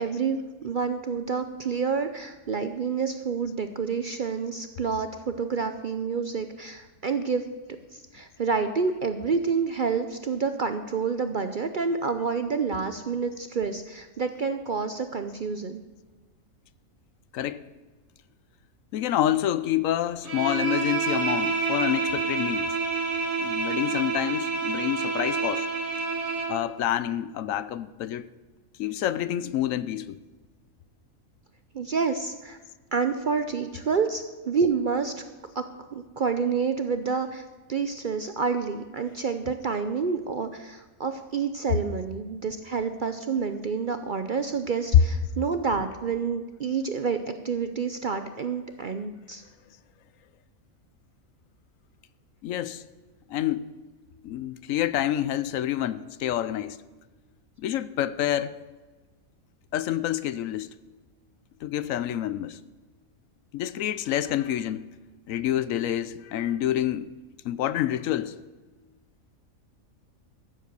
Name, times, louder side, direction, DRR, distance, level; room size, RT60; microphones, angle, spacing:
voice 1, 0.0-7.4 7.9-15.8 31.7-32.6 32.9-35.1 35.5-35.7 35.9-49.4, right 5 dB, 50° right, 0.6 m, -28 dB
voice 2, 17.3-17.7 18.9-22.8 23.4-25.7 26.5-28.3 28.8-30.2 41.7-41.8 44.9-45.0 52.4-52.8 53.3-53.7 54.2-56.8 57.6-58.5 59.7-60.7 61.6-62.6 63.5-64.9 65.3-67.1 67.4-68.4, left 11 dB, 75° left, 0.9 m, -27 dB
Bowed string instrument, 20.2-26.6, right 4 dB, 70° right, 2.8 m, -28 dB
14.0 x 7.7 x 6.7 m
omnidirectional pair, 1.5 m